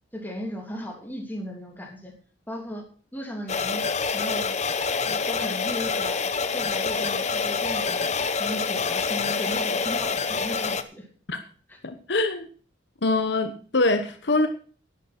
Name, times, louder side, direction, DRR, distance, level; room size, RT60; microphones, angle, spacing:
voice 1, 0.1-2.1 2.5-2.8 3.1-3.8 4.1-4.6 5.0-8.1 8.4-11.1 11.7-11.8, equal, 10° left, 0 dB, 3.0 m, -36 dB
sound 1, 3.5-10.8, left 5 dB, 35° left, 0.8 m, -26 dB
voice 2, 11.8-12.5 13.0-14.5, left 2 dB, 60° left, 7 dB, 1.1 m, -24 dB
11.5 x 9.2 x 6.0 m, 0.41 s
head